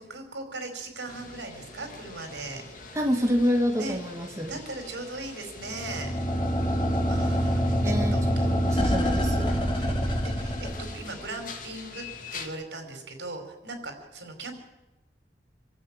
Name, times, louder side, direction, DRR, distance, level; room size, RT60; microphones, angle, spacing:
voice 1, 0.0-2.6 3.8-4.0 4.5-6.1 7.1-8.9 9.6-12.0 12.3-14.6, right 2 dB, 80° right, 5 dB, 4.8 m, -39 dB
sound 1, 1.1-12.5, left 4 dB, 50° left, 2.3 m, -45 dB
voice 2, 2.9-4.5 7.8-8.2 8.5-9.5, equal, 15° right, 1 dB, 2.0 m, -27 dB
Machinery BP, 5.6-11.2, equal, 30° left, 2.3 m, -26 dB
26.5 x 13.5 x 8.9 m, 1.0 s
head